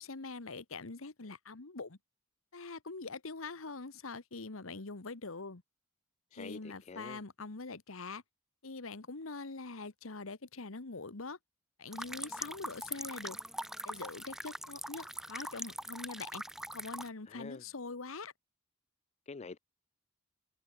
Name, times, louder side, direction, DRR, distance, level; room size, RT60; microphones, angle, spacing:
voice 1, 0.0-2.0 2.5-5.6 6.3-8.2 8.6-11.4 11.8-13.4 13.8-16.4 16.7-18.3, left 3 dB, 85° left, 1.4 m, -44 dB
voice 2, 6.3-7.2 17.3-17.6 19.3-19.6, left 4 dB, 35° left, 0.5 m, -46 dB
sound 1, 11.9-17.1, right 1 dB, ahead, 2.2 m, -42 dB
head